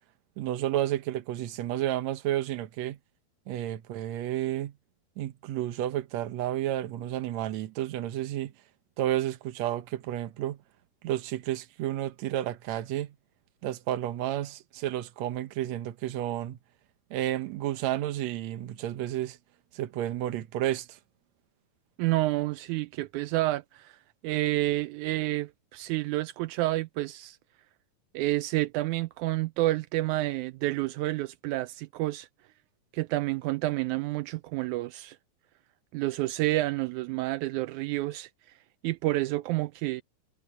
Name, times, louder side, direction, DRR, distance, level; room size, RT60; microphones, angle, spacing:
voice 1, 0.4-3.0 3.5-4.7 5.2-8.5 9.0-10.6 11.0-13.1 13.6-16.6 17.1-19.4 19.7-21.0, right 13 dB, 65° right, 1.9 m, -31 dB
voice 2, 22.0-24.0 24.2-27.4 28.1-32.3 32.9-35.2 35.9-38.3 38.8-40.0, right 17 dB, 80° right, 1.7 m, -29 dB
omnidirectional pair, 4.0 m